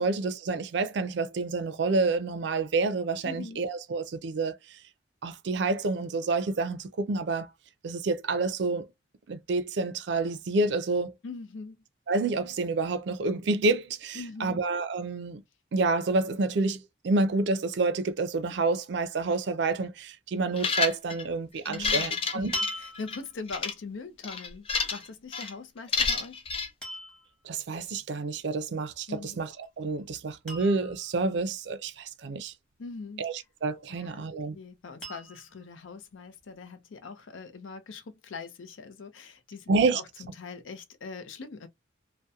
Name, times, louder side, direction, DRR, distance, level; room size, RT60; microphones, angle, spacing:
voice 1, 0.0-4.6 5.2-7.5 7.8-8.9 9.3-11.1 12.1-15.4 15.7-22.6 27.4-32.5 33.2-34.6 39.7-40.0, right 3 dB, 65° right, 0.4 m, -28 dB
voice 2, 3.2-3.6 11.2-11.8 14.1-14.6 21.7-24.7 24.9-26.4 29.1-29.4 32.8-33.3 34.0-41.7, left 4 dB, 90° left, 0.5 m, -42 dB
sound 1, 20.6-21.2 21.7-23.2 23.5-23.7 24.2-25.1 25.3-25.5 25.9-26.7, left 5 dB, 30° left, 0.4 m, -29 dB
sound 2, 21.6-21.8 22.5-23.4 25.8-26.2 26.8-27.3 29.3-29.7 30.0-30.1 30.5-31.1 33.4-34.0 35.0-35.6 36.4-36.5, equal, 5° left, 0.9 m, -39 dB
2.7 x 2.1 x 2.3 m
head